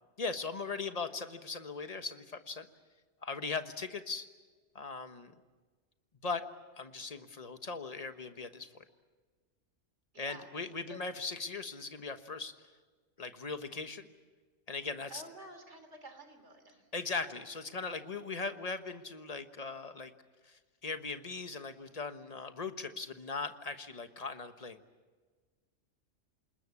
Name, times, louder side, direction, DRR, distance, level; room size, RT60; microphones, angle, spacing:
voice 1, 0.2-2.7 3.2-4.3 4.7-5.3 6.2-6.4 6.8-8.8 10.2-12.5 13.2-14.1 14.7-15.2 16.9-20.1 20.5-24.8, left 4 dB, 30° left, 9 dB, 1.3 m, -39 dB
voice 2, 10.1-10.5 10.9-11.1 15.1-16.8, right 1 dB, 65° right, 7 dB, 3.4 m, -50 dB
27.5 x 20.5 x 8.4 m, 1.4 s
omnidirectional pair, 1.3 m